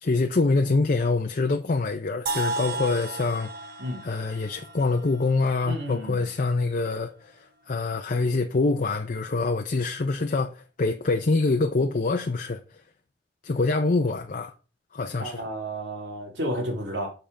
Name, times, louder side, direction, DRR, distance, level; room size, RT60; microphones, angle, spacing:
voice 1, 0.0-3.5 4.0-7.3 7.7-12.6 13.4-14.5 14.9-15.4, left 3 dB, 50° left, 0.6 m, -25 dB
sound 1, 2.3-6.2, right 2 dB, 55° right, 1.0 m, -34 dB
voice 2, 5.6-6.3 15.2-17.1, equal, 90° right, 2.5 m, -32 dB
6.7 x 5.6 x 5.0 m
head